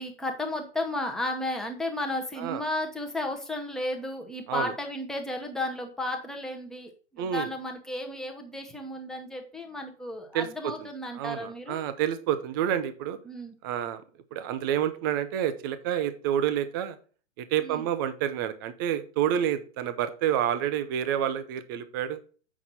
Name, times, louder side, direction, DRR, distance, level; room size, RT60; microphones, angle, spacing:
voice 1, 0.0-11.8 13.3-13.5 17.6-17.9, left 1 dB, ahead, 2 dB, 1.0 m, -33 dB
voice 2, 7.2-7.5 10.3-10.7 11.1-13.2 13.6-14.0 14.3-17.0 17.4-22.2, right 10 dB, 20° right, 12 dB, 0.4 m, -28 dB
7.9 x 5.9 x 4.1 m, 0.39 s
hypercardioid pair, 140°, 39 cm